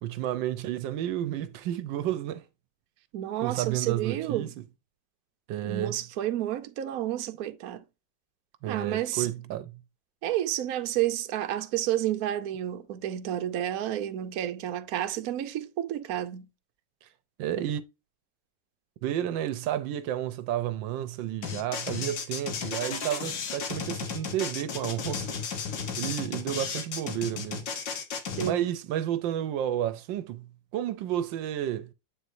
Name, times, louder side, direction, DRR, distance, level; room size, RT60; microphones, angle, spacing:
voice 1, 0.0-2.4 3.4-4.5 5.5-6.0 8.6-9.8 17.0-17.1 17.4-17.8 19.0-25.4 26.0-27.7 28.4-31.9, right 11 dB, 80° right, 1.3 m, -31 dB
voice 2, 3.1-4.5 5.6-7.8 8.7-9.3 10.2-16.5 28.4-28.7, right 12 dB, 60° right, 1.0 m, -30 dB
sound 1, 21.4-28.5, left 6 dB, 75° left, 1.9 m, -34 dB
8.1 x 4.5 x 2.6 m
omnidirectional pair, 2.0 m